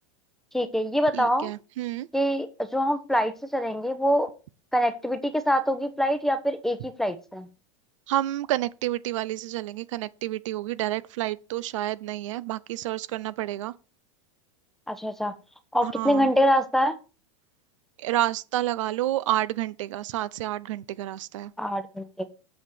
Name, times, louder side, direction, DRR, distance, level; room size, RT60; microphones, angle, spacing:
voice 1, 0.5-1.5 2.1-2.5 2.7-4.3 4.7-7.5 14.9-15.3 15.7-17.0 21.6-22.3, equal, ahead, 1.1 m, -24 dB
voice 2, 1.1-2.1 8.1-13.7 15.8-16.3 18.0-21.5, right 14 dB, 75° right, 0.6 m, -29 dB
7.3 x 6.1 x 6.1 m
supercardioid pair, 135°, 16 cm